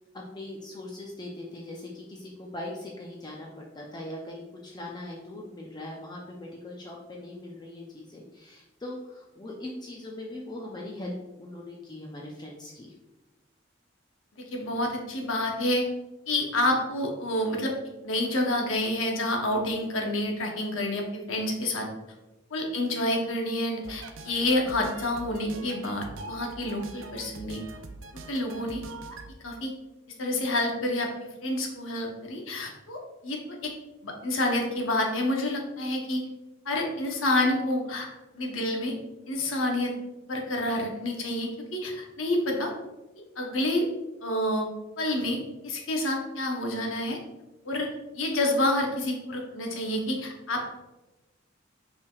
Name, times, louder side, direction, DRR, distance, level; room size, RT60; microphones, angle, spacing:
voice 1, 0.1-12.9 22.6-22.7, left 1 dB, 20° left, -2 dB, 0.4 m, -40 dB
voice 2, 14.5-15.9 16.3-17.7 18.0-21.9 22.5-27.6 28.3-28.8 29.4-29.7 30.2-31.1 31.4-33.7 34.0-36.2 36.6-38.1 38.3-38.9 39.3-39.9 40.3-42.7 43.4-43.9 44.2-44.7 45.0-45.4 45.6-47.2 47.6-47.9 48.1-50.6, left 1 dB, 85° left, 1 dB, 0.8 m, -28 dB
sound 1, 23.8-29.3, right 3 dB, 75° right, 0.4 m, -43 dB
5.5 x 3.3 x 2.3 m, 1.1 s
head